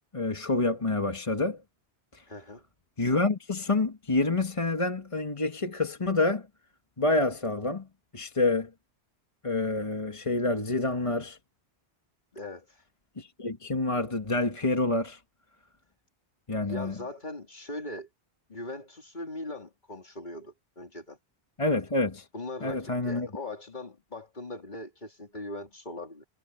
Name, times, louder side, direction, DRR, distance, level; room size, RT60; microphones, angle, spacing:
voice 1, 0.1-1.6 2.1-2.2 3.0-6.5 7.0-7.9 8.1-8.7 9.4-11.4 13.2-15.2 16.5-16.9 21.6-22.3 22.6-23.3, left 2 dB, 30° left, 1.5 m, -27 dB
voice 2, 2.3-2.6 12.3-12.8 16.6-18.1 18.5-21.2 22.3-26.2, left 2 dB, 45° left, 3.2 m, -40 dB
omnidirectional pair, 1.1 m